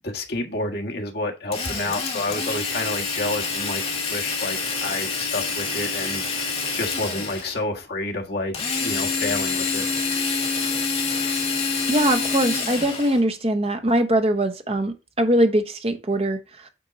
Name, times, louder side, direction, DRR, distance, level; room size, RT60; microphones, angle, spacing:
voice 1, 0.0-6.2 6.7-9.9, left 2 dB, 55° left, 1.6 m, -29 dB
Drill, 1.5-7.6 8.5-13.2, left 4 dB, 30° left, 2.0 m, -27 dB
voice 2, 11.9-16.7, right 1 dB, 30° right, 1.0 m, -22 dB
8.6 x 4.6 x 4.0 m
head